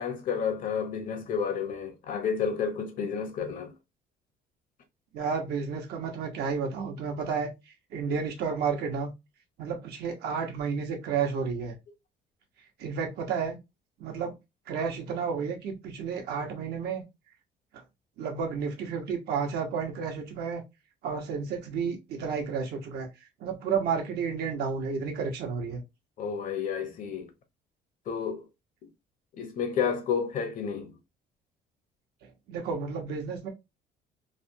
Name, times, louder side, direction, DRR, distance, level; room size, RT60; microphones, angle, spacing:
voice 1, 0.0-3.7 26.2-27.3 28.1-28.5 29.4-30.9, left 6 dB, 55° left, 0.9 m, -31 dB
voice 2, 5.1-7.5 7.9-9.1 9.6-11.7 12.8-13.6 14.0-14.3 14.7-17.0 18.2-20.6 21.0-23.1 23.4-25.8 32.5-33.5, right 6 dB, 75° right, 1.1 m, -31 dB
3.3 x 2.2 x 2.6 m
cardioid pair, 110°, 17 cm